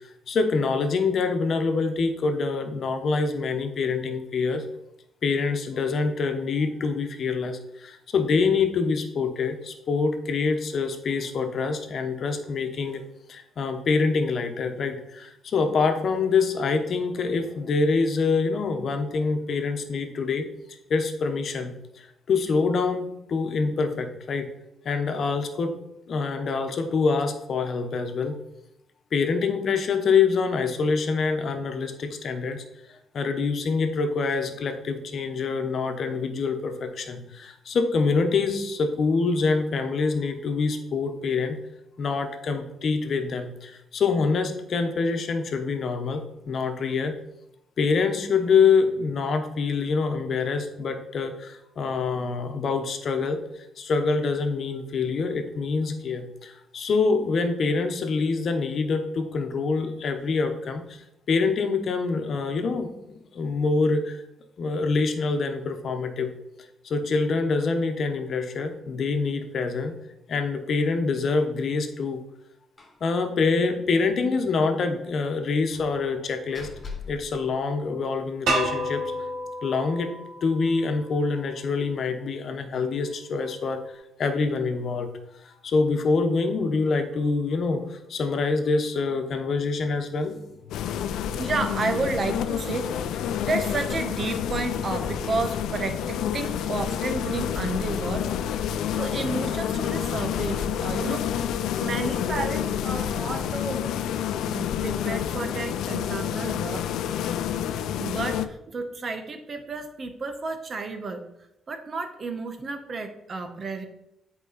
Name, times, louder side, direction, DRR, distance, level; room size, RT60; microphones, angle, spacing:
voice 1, 0.3-4.6 5.2-13.0 13.3-24.5 24.8-25.7 26.1-28.4 29.1-32.6 32.9-41.6 42.0-47.1 47.8-62.9 63.3-64.2 64.6-66.3 66.8-70.0 70.3-72.2 73.0-76.7 77.1-79.0 79.6-80.1 80.4-85.1 85.4-90.3, left 4 dB, 55° left, 6 dB, 1.1 m, -25 dB
Slam, 72.8-73.1 73.4-73.5 73.8-73.9 75.7-78.3, left 5 dB, 35° left, 1.6 m, -43 dB
sound 1, 78.5-81.4, right 1 dB, 70° right, 1.7 m, -30 dB
sound 2, 90.7-108.5, left 9 dB, 85° left, 0.4 m, -29 dB
voice 2, 91.4-98.3 98.9-101.3 101.8-103.9 104.4-106.9 108.0-111.3 111.7-113.9, right 3 dB, 45° right, 7 dB, 1.1 m, -31 dB
8.2 x 4.9 x 4.2 m, 0.83 s
cardioid pair, 90°, 0 cm